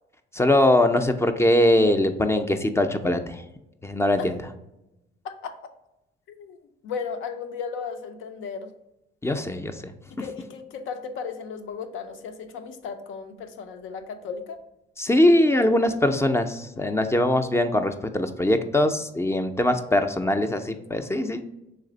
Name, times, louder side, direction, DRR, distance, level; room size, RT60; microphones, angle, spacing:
voice 1, 0.3-3.4 3.8-4.4 9.2-9.9 15.0-21.4, left 1 dB, 15° left, 8 dB, 0.4 m, -22 dB
voice 2, 5.2-5.6 6.3-6.6 6.8-8.7 10.1-14.6, left 6 dB, 80° left, 8 dB, 0.6 m, -35 dB
3.3 x 3.3 x 3.9 m, 0.91 s
cardioid pair, 90°, 20 cm